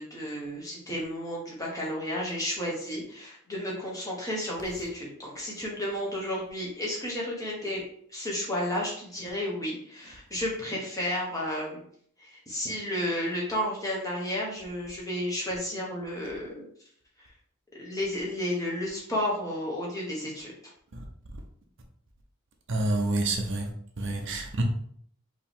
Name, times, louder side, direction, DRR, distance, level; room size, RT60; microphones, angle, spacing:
voice 1, 0.0-7.8 8.1-11.8 12.2-16.7 17.2-17.3 17.8-20.5, left 1 dB, 15° left, 1.3 m, -32 dB
voice 2, 22.7-23.7 24.0-24.6, right 2 dB, 55° right, 0.7 m, -28 dB
4.8 x 3.0 x 3.6 m
head